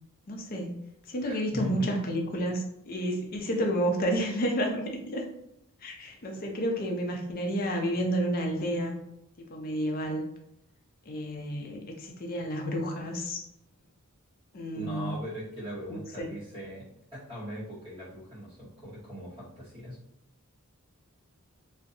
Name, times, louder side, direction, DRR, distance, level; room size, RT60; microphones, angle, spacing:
voice 1, 0.3-0.8 1.1-5.2 5.8-8.9 9.5-10.3 11.1-13.4 14.5-15.1 15.9-16.3, equal, 40° left, 2 dB, 0.5 m, -30 dB
voice 2, 1.2-1.9 6.4-6.5 14.7-20.0, equal, 25° right, -10 dB, 1.4 m, -40 dB
2.6 x 2.1 x 2.6 m, 0.81 s
head